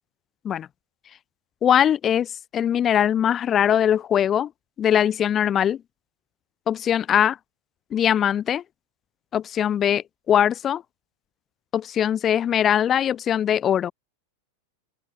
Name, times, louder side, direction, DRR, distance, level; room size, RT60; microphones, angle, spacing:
voice 1, 1.6-2.3 2.5-4.5 4.8-5.8 6.7-7.4 7.9-8.6 9.3-10.8 11.7-13.9, left 9 dB, 25° left, 0.5 m, -21 dB
open air
figure-of-eight pair, 90°, 0 cm